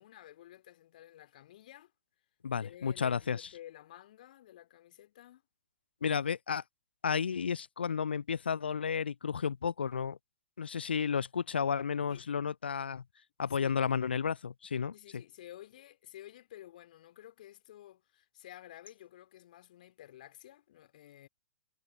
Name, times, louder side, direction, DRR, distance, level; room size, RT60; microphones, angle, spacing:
voice 1, 0.0-1.9 2.6-5.4 12.1-12.2 13.6-13.8 14.9-21.3, left 13 dB, 50° left, 2.4 m, -53 dB
voice 2, 2.4-3.5 6.0-6.6 7.0-10.2 10.6-13.0 13.4-15.2, left 6 dB, 70° left, 0.3 m, -32 dB
figure-of-eight pair, 110°, 6 cm